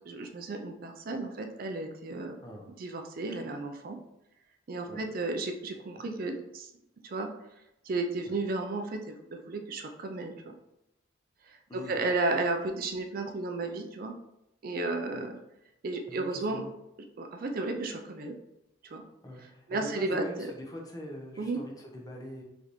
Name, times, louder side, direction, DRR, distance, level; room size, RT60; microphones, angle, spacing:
voice 1, 0.1-2.4 2.8-4.0 4.7-6.7 7.0-7.3 7.9-10.5 11.5-14.1 14.6-15.3 15.8-16.6 17.2-18.3 18.9-19.0 19.7-20.5 21.4-21.6, right 2 dB, 50° right, 5 dB, 0.4 m, -33 dB
voice 2, 11.7-12.0 15.1-15.3 16.1-16.7 19.2-22.4, equal, 20° left, 0 dB, 0.7 m, -43 dB
4.7 x 3.3 x 3.0 m, 0.88 s
head